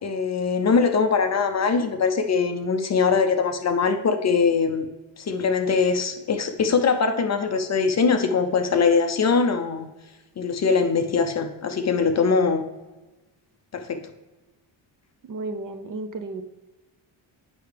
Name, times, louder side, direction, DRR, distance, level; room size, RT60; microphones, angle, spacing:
voice 1, 0.0-4.9 5.2-9.9 10.4-12.6 13.7-14.0, left 5 dB, 35° left, 7 dB, 0.5 m, -22 dB
voice 2, 15.2-16.4, right 2 dB, 45° right, 8 dB, 0.5 m, -33 dB
8.4 x 5.7 x 3.3 m, 1.1 s
wide cardioid pair, 175°, 47 cm